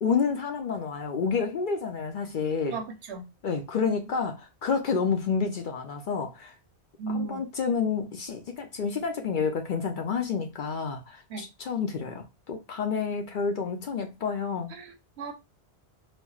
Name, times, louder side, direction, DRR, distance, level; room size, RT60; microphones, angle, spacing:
voice 1, 0.0-2.8 3.4-6.5 7.1-14.7, left 5 dB, 60° left, 0.6 m, -29 dB
voice 2, 2.7-3.3 7.0-7.4 11.3-11.5 14.7-15.3, right 4 dB, 80° right, 1.0 m, -35 dB
4.2 x 2.0 x 2.3 m
omnidirectional pair, 1.1 m